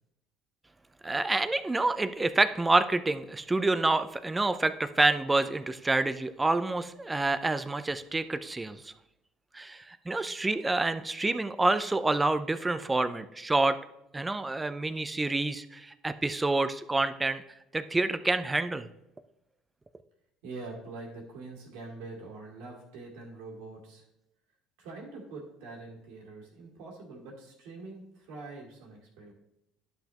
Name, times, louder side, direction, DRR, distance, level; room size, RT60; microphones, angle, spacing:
voice 1, 1.0-8.9 9.5-13.8 14.1-17.4 17.7-18.9, right 2 dB, 15° right, 12 dB, 0.5 m, -28 dB
voice 2, 20.4-24.0 24.8-29.3, right 3 dB, 80° right, -1 dB, 2.4 m, -44 dB
11.0 x 5.8 x 2.9 m, 0.86 s
supercardioid pair, 75°, 0 cm